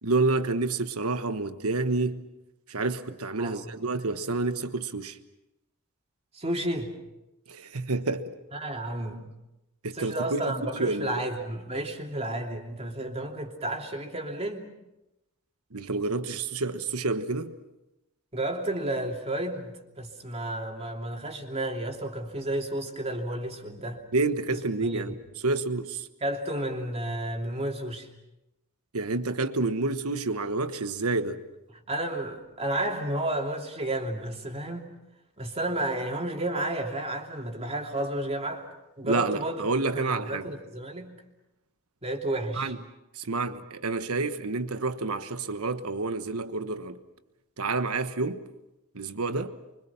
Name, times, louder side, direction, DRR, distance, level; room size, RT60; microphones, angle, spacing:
voice 1, 0.0-2.2 2.7-5.2 7.5-8.3 9.8-10.4 10.7-11.2 15.7-17.5 24.1-26.1 28.9-31.4 39.0-40.5 42.6-42.8 43.1-47.0 47.6-48.5 48.9-49.6, right 3 dB, 80° right, 1.3 m, -29 dB
voice 2, 3.4-3.8 6.3-7.0 8.5-9.3 9.9-14.7 18.3-24.0 24.5-25.2 26.2-28.1 31.7-34.9 35.4-38.7 39.0-39.6 39.9-41.1 42.0-42.7, right 1 dB, 30° right, 3.0 m, -32 dB
29.5 x 24.5 x 6.0 m
head